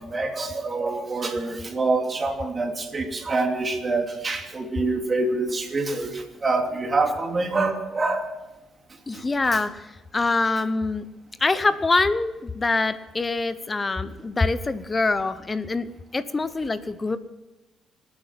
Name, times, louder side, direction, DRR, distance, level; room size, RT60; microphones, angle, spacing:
voice 1, 0.0-8.2, right 3 dB, 30° right, 3 dB, 2.8 m, -26 dB
voice 2, 9.1-11.1 11.4-17.2, left 3 dB, 25° left, 14 dB, 0.8 m, -25 dB
25.5 x 8.8 x 5.9 m, 1.0 s
cardioid pair, 90°, 0 cm